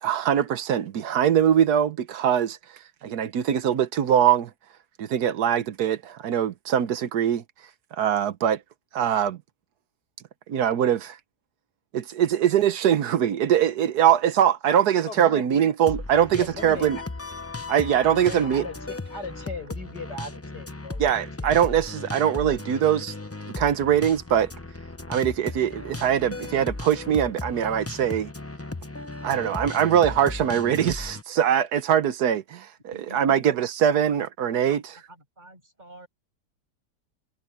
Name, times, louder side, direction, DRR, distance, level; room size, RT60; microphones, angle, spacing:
voice 1, 0.0-2.6 3.0-4.5 5.0-7.4 8.0-8.6 8.9-9.4 10.5-11.2 11.9-17.0 17.7-18.7 21.0-23.1 23.5-24.5 25.1-28.3 29.2-34.8, right 9 dB, 75° right, 1.4 m, -22 dB
voice 2, 15.1-15.4 16.4-17.0 18.2-21.5, left 2 dB, 80° left, 7.4 m, -38 dB
sound 1, 15.9-31.2, left 2 dB, 20° left, 0.4 m, -36 dB
voice 3, 32.9-36.1, right 1 dB, 25° right, 7.7 m, -50 dB
omnidirectional pair, 1.7 m